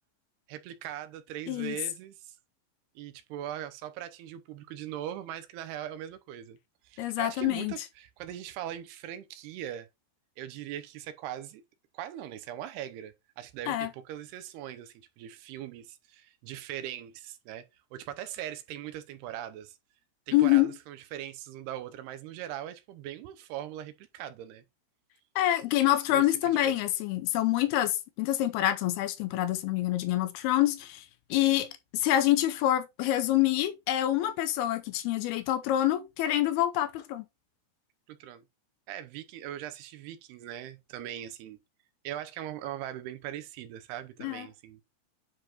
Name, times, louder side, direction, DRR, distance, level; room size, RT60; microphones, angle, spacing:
voice 1, 0.5-2.4 3.0-6.6 6.8-9.9 10.4-11.6 11.9-17.7 17.9-19.8 20.3-24.6 26.1-26.8 38.1-38.4 38.9-41.6 42.0-44.8, right 11 dB, 85° right, 2.7 m, -40 dB
voice 2, 7.0-7.7 13.7-13.9 20.3-20.7 25.4-31.0 31.3-31.7 31.9-37.3 44.2-44.5, left 13 dB, 85° left, 2.6 m, -26 dB
9.7 x 4.5 x 2.9 m
omnidirectional pair, 4.7 m